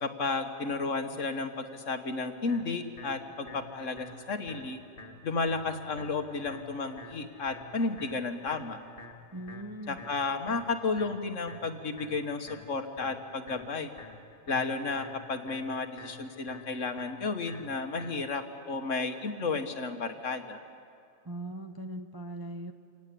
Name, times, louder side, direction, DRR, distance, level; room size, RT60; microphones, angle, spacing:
voice 1, 0.0-4.8 5.2-8.8 9.9-13.9 14.5-20.6, left 4 dB, 65° left, 7 dB, 1.7 m, -33 dB
sound 1, 2.5-18.5, left 2 dB, 40° left, 2.1 m, -50 dB
voice 2, 9.3-10.0 10.5-10.7 21.2-22.7, right 1 dB, 20° right, 6 dB, 0.7 m, -40 dB
26.5 x 18.5 x 8.5 m, 2.4 s
omnidirectional pair, 1.4 m